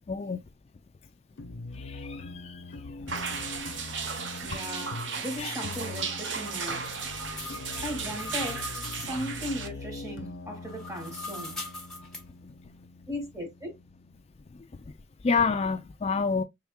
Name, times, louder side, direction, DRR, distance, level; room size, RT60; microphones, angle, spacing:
voice 1, 0.1-0.4 1.8-2.6 4.4-4.6 5.4-5.5 15.2-16.4, left 5 dB, 35° left, 0.4 m, -28 dB
sound 1, 1.4-14.2, left 3 dB, 85° left, 0.5 m, -43 dB
sound 2, 3.1-9.7, right 5 dB, 90° right, 0.9 m, -35 dB
voice 2, 4.4-7.0 7.8-11.6 13.1-13.7, equal, 20° right, 1.7 m, -37 dB
sound 3, 5.9-9.2 10.6-12.2, left 2 dB, 5° left, 1.2 m, -41 dB
4.7 x 3.6 x 2.2 m
head